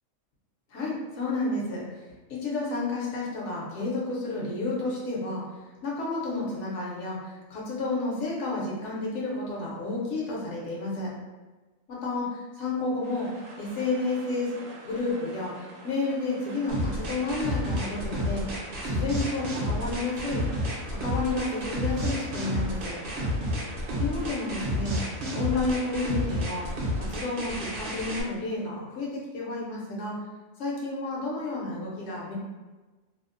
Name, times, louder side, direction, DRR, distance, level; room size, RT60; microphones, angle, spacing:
voice 1, 0.7-1.8 2.3-5.4 5.8-11.1 11.9-13.3 13.6-14.6 14.8-18.5 18.8-20.4 20.9-23.0 24.0-25.0 25.3-26.7 26.9-30.2 30.6-32.3, left 3 dB, 70° left, -4 dB, 1.0 m, -31 dB
sound 1, 13.0-27.2, right 2 dB, 85° right, 1.0 m, -46 dB
sound 2, 16.7-28.2, equal, 55° right, 0.6 m, -30 dB
2.6 x 2.0 x 2.4 m, 1.2 s
omnidirectional pair, 1.4 m